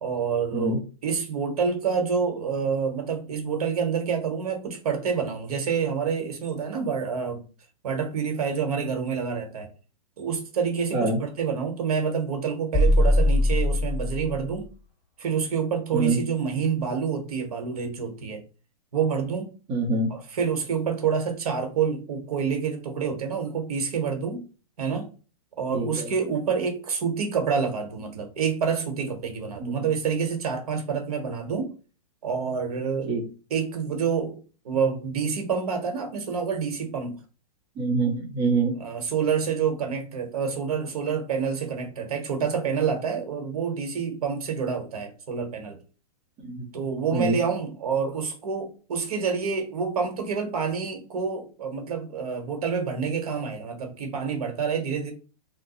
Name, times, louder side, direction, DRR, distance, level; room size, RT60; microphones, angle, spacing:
voice 1, 0.0-7.4 7.8-9.7 10.2-14.7 15.2-18.4 18.9-19.5 20.1-24.4 24.8-25.1 25.6-31.7 32.2-33.1 33.5-37.1 38.8-45.8 46.7-55.1, right 6 dB, 65° right, 1.1 m, -27 dB
sound 1, 12.7-14.6, left 1 dB, 5° right, 1.7 m, -21 dB
voice 2, 19.7-20.1 25.7-26.1 29.6-29.8 33.1-33.2 37.8-38.7 46.4-46.6 47.1-47.4, right 3 dB, 25° right, 0.9 m, -25 dB
2.7 x 2.2 x 4.0 m
hypercardioid pair, 160°, 20 cm